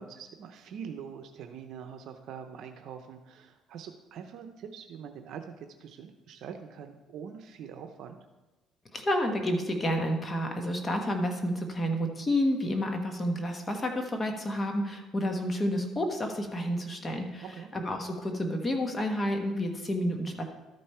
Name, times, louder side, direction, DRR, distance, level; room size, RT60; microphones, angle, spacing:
voice 1, 0.0-8.2 17.4-17.7, right 7 dB, 70° right, 6 dB, 0.7 m, -44 dB
voice 2, 8.9-17.4 17.7-20.4, equal, 25° left, 3 dB, 1.2 m, -30 dB
12.5 x 5.3 x 4.4 m, 1.1 s
cardioid pair, 105°, 0 cm